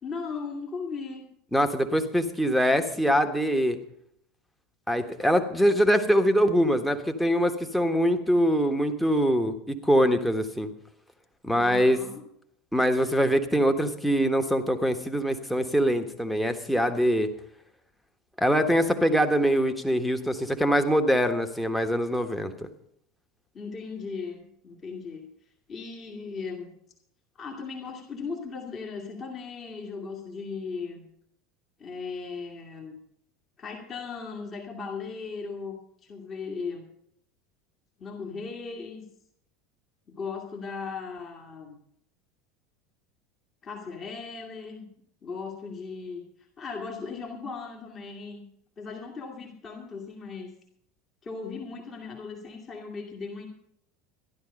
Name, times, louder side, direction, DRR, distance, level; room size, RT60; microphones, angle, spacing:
voice 1, 0.0-1.3 11.5-12.2 19.1-19.2 23.5-25.3 25.7-26.7 27.4-31.1 31.8-33.0 33.6-35.8 36.1-36.9 38.0-39.1 40.1-41.8 43.6-44.9 45.2-46.2 46.6-48.5 48.8-50.6 51.2-53.5, left 4 dB, 30° left, 1 dB, 2.2 m, -37 dB
voice 2, 1.5-3.8 4.9-10.7 11.4-12.0 12.7-17.3 18.4-22.7, equal, ahead, 5 dB, 1.4 m, -23 dB
14.0 x 11.5 x 5.4 m, 0.72 s
figure-of-eight pair, 75°, 0 cm